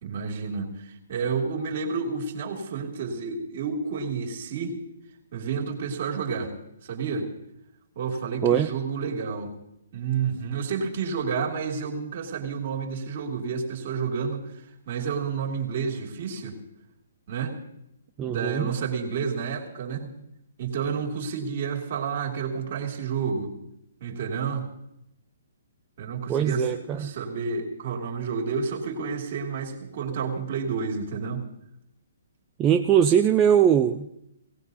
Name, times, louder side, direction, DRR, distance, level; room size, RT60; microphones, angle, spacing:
voice 1, 0.0-4.8 5.3-6.5 6.8-7.3 8.0-9.5 9.9-16.6 17.3-17.5 18.2-20.1 20.6-23.5 24.0-24.7 26.0-31.5, right 5 dB, 50° right, 1 dB, 2.5 m, -30 dB
voice 2, 18.2-18.7 26.3-27.1 32.6-34.2, right 9 dB, 20° right, 4 dB, 0.5 m, -21 dB
18.0 x 18.0 x 2.7 m, 0.82 s
figure-of-eight pair, 130°, 0 cm